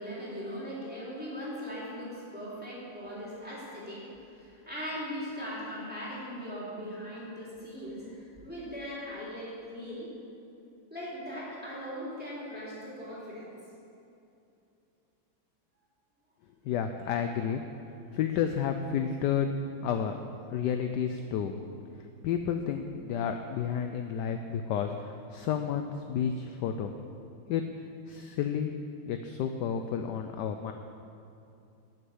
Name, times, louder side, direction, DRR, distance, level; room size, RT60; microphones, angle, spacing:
voice 1, 0.0-4.0 4.3-10.2 10.9-13.5 17.1-17.5, equal, 5° right, -8 dB, 3.2 m, -39 dB
voice 2, 16.6-17.6 18.1-19.5 19.8-20.2 20.5-21.5 22.2-26.9 27.5-27.6 28.1-28.7 29.1-30.7, left 8 dB, 75° left, 6 dB, 1.0 m, -31 dB
11.5 x 6.6 x 7.8 m, 2.7 s
omnidirectional pair, 2.2 m